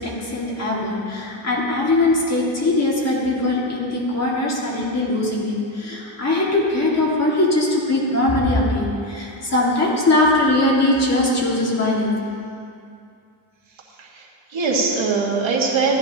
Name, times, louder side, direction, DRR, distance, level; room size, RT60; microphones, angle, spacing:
voice 1, 0.0-12.1, left 2 dB, 35° left, -5 dB, 2.1 m, -20 dB
voice 2, 14.0-16.0, right 4 dB, 85° right, -3 dB, 1.8 m, -22 dB
14.5 x 11.0 x 2.9 m, 2.5 s
wide cardioid pair, 165°, 45 cm